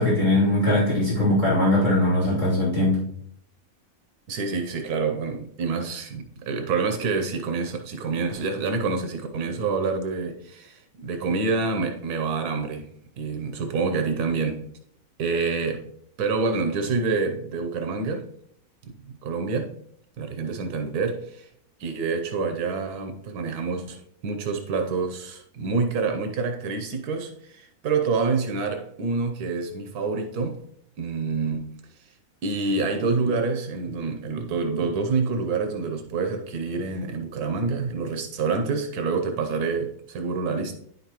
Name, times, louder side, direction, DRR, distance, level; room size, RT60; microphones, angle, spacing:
voice 1, 0.0-3.0, left 1 dB, 30° left, 3.1 m, -21 dB
voice 2, 4.3-12.9 13.2-14.6 15.2-15.9 16.2-18.3 19.1-19.7 20.2-21.5 21.8-30.6 31.0-31.7 32.4-40.7, right 4 dB, 85° right, 1.3 m, -27 dB
9.9 x 5.7 x 3.0 m
omnidirectional pair, 1.6 m